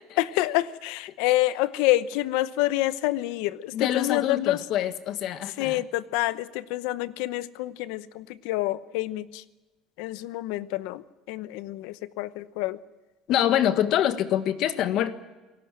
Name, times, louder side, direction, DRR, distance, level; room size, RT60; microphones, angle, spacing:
voice 1, 0.2-4.7 5.4-9.4 10.0-12.8, left 16 dB, 85° left, 16 dB, 0.9 m, -27 dB
voice 2, 3.7-5.8 13.3-15.1, left 11 dB, 60° left, 11 dB, 1.5 m, -25 dB
28.5 x 18.5 x 7.6 m, 1.2 s
cardioid pair, 140°, 0 cm